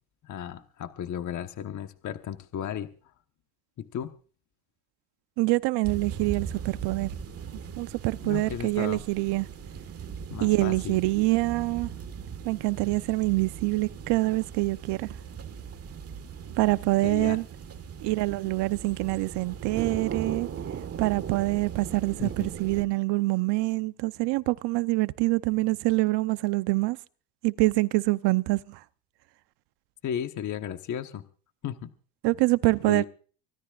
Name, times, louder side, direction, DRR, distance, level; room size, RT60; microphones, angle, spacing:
voice 1, 0.2-2.9 3.8-4.1 8.2-9.0 10.3-11.0 17.0-17.4 22.2-22.5 30.0-31.2 31.6-31.9 32.9-33.0, left 9 dB, 40° left, 1.2 m, -34 dB
voice 2, 5.4-7.1 7.8-9.5 10.4-11.9 12.5-15.1 16.6-17.4 18.0-20.5 21.0-27.0 27.4-28.8 32.2-33.0, right 22 dB, 65° right, 0.9 m, -25 dB
sound 1, 5.8-22.8, right 7 dB, 30° right, 1.6 m, -39 dB
24.5 x 17.5 x 2.5 m
supercardioid pair, 110°, 45 cm